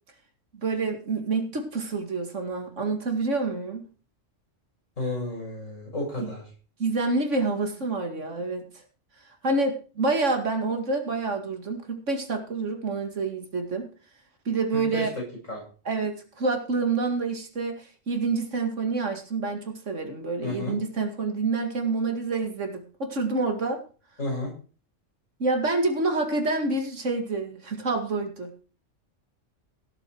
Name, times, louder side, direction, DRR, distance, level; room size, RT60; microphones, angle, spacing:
voice 1, 0.6-3.8 6.2-6.3 6.8-8.7 9.4-13.9 14.5-15.1 15.9-23.8 25.4-28.5, right 3 dB, 75° right, 5 dB, 2.4 m, -27 dB
voice 2, 5.0-6.4 14.7-15.1 15.5-15.6 20.4-20.8 24.2-24.5, left 2 dB, 85° left, -1 dB, 7.8 m, -31 dB
16.5 x 8.1 x 4.6 m, 0.37 s
omnidirectional pair, 1.3 m